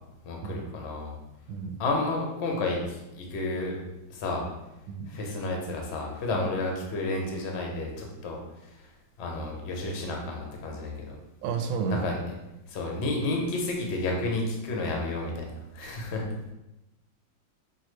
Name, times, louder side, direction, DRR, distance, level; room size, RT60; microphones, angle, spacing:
voice 1, 0.2-1.1 1.8-3.8 4.1-4.4 5.1-8.4 9.2-11.1 12.0-12.2 12.7-16.3, left 2 dB, 55° left, 0 dB, 0.7 m, -31 dB
voice 2, 11.4-12.1, right 5 dB, 85° right, 5 dB, 1.4 m, -31 dB
5.4 x 2.8 x 3.1 m, 0.95 s
omnidirectional pair, 2.1 m